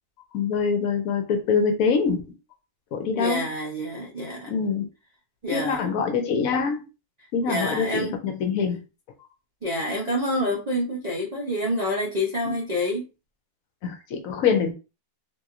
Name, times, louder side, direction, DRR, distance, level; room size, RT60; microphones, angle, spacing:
voice 1, 0.3-2.4 2.9-3.5 4.5-4.9 5.5-6.9 7.3-8.8 12.4-12.5 13.8-14.7, left 5 dB, 70° left, 0.9 m, -24 dB
voice 2, 3.1-4.5 5.4-5.9 7.4-8.1 9.6-13.1, left 1 dB, 70° right, 0.3 m, -27 dB
2.9 x 2.6 x 2.4 m
omnidirectional pair, 1.7 m